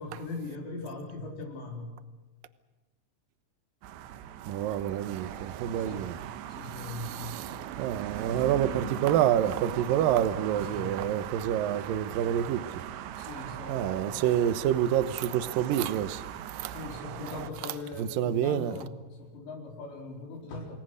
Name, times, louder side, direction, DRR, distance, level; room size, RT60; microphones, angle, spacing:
voice 1, 0.0-1.9 5.8-6.1 6.5-7.4 10.5-11.0 13.2-14.2 16.7-20.8, left 2 dB, 90° left, 6.5 m, -40 dB
sound 1, 3.8-17.5, right 11 dB, 90° right, 3.3 m, -39 dB
voice 2, 4.5-6.1 6.9-7.5 7.8-12.6 13.7-16.2 16.5-16.7 18.0-18.8, right 10 dB, 70° right, 2.3 m, -28 dB
28.5 x 20.0 x 6.5 m
omnidirectional pair, 4.9 m